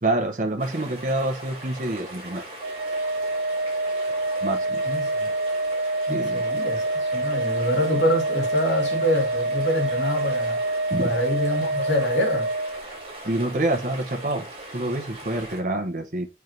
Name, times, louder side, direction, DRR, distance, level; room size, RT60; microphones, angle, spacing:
voice 1, 0.0-2.4 4.4-4.8 6.1-6.4 10.9-11.1 13.2-14.5 14.7-16.3, right 2 dB, 50° right, 1.1 m, -27 dB
sound 1, 0.6-15.6, right 1 dB, 30° right, 3.0 m, -40 dB
Organ, 2.6-13.3, right 2 dB, 85° right, 0.5 m, -26 dB
voice 2, 4.8-5.3 6.1-10.6 11.0-12.5, left 1 dB, 85° left, 2.5 m, -26 dB
7.3 x 4.7 x 2.8 m
head